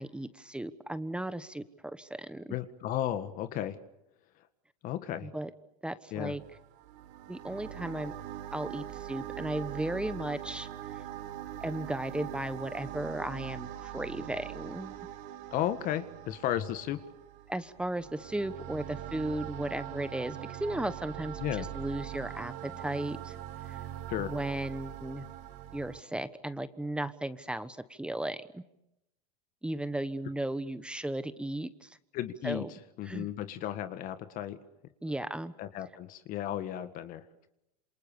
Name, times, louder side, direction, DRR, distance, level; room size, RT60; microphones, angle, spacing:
voice 1, 0.0-2.5 5.2-5.5 5.8-6.4 7.3-8.1 8.5-10.7 11.6-15.0 17.5-23.3 23.6-23.8 24.2-25.3 25.7-28.6 29.6-32.0 32.4-32.7 33.0-33.3 35.0-35.5, right 1 dB, 5° right, 14 dB, 1.1 m, -35 dB
voice 2, 2.5-3.8 4.8-5.3 6.1-6.4 15.5-17.0 21.4-21.7 24.1-24.3 32.1-32.6 33.0-34.6 35.6-37.2, left 11 dB, 45° left, 11 dB, 1.7 m, -34 dB
sound 1, 6.4-26.0, right 12 dB, 55° right, 3.7 m, -42 dB
27.5 x 27.5 x 6.9 m, 0.87 s
hypercardioid pair, 105°, 19 cm